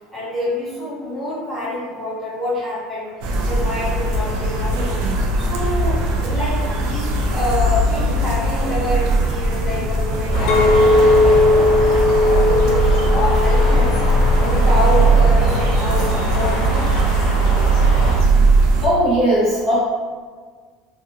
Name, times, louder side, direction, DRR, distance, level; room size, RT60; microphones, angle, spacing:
voice 1, 0.1-5.0 5.4-14.0 14.4-16.9, left 1 dB, 10° left, -11 dB, 1.1 m, -27 dB
sound 1, 3.2-18.9, right 2 dB, 60° right, 0.4 m, -19 dB
sound 2, 10.3-18.1, equal, 70° left, 0.9 m, -24 dB
Chink clink, 10.5-14.8 15.3-15.7, left 2 dB, 55° left, 0.3 m, -18 dB
voice 2, 18.8-19.8, right 1 dB, 15° right, -13 dB, 0.7 m, -17 dB
2.5 x 2.4 x 2.7 m, 1.5 s
cardioid pair, 170°, 0 cm